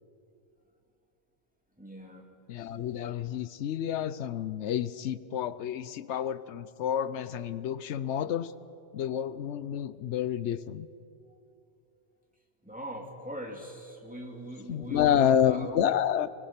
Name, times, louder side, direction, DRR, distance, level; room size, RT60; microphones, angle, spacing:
voice 1, 1.8-2.3 12.6-15.7, equal, 5° right, 0 dB, 2.2 m, -41 dB
voice 2, 2.5-8.5 8.9-10.9 14.7-16.3, left 9 dB, 90° left, 16 dB, 1.0 m, -29 dB
23.0 x 20.0 x 5.8 m, 2.6 s
omnidirectional pair, 1.1 m